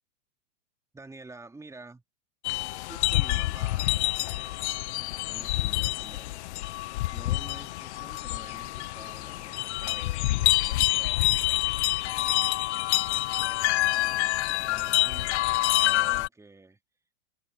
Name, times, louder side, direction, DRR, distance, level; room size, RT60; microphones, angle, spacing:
voice 1, 0.9-2.0 2.9-4.9 5.3-6.4 7.1-11.6 11.9-16.8, right 3 dB, 5° right, 3.4 m, -50 dB
sound 1, 2.4-16.3, left 18 dB, 60° left, 0.7 m, -27 dB
hypercardioid pair, 120°, 39 cm